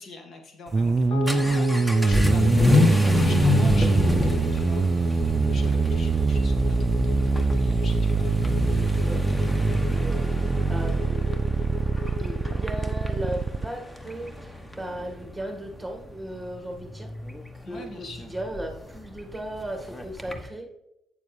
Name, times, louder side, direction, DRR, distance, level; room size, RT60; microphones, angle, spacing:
voice 1, 0.0-8.3 17.6-18.3, left 2 dB, 55° left, 3 dB, 1.6 m, -43 dB
Vehicle / Accelerating revving vroom, 0.7-20.5, left 2 dB, 10° left, 1.1 m, -28 dB
sound 1, 0.7-13.7, right 4 dB, 35° right, 0.4 m, -23 dB
sound 2, 1.1-13.6, left 8 dB, 70° left, 1.7 m, -38 dB
voice 2, 8.6-9.6 9.9-11.2 12.2-17.1 17.7-20.7, right 1 dB, 5° right, 3 dB, 1.7 m, -36 dB
8.5 x 6.9 x 3.2 m, 0.84 s
supercardioid pair, 75°, 0 cm